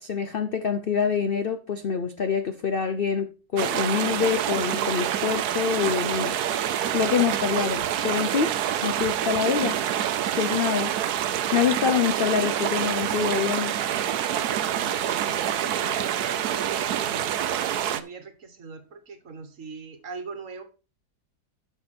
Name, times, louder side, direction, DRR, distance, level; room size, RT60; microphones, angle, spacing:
voice 1, 0.0-6.3 6.9-8.6 8.8-10.0 10.3-11.0 11.5-13.8, left 7 dB, 60° left, 0.6 m, -26 dB
sound 1, 3.6-18.0, right 10 dB, 75° right, 1.2 m, -27 dB
voice 2, 14.7-20.6, right 4 dB, 50° right, 1.5 m, -41 dB
11.5 x 6.0 x 4.3 m
omnidirectional pair, 1.8 m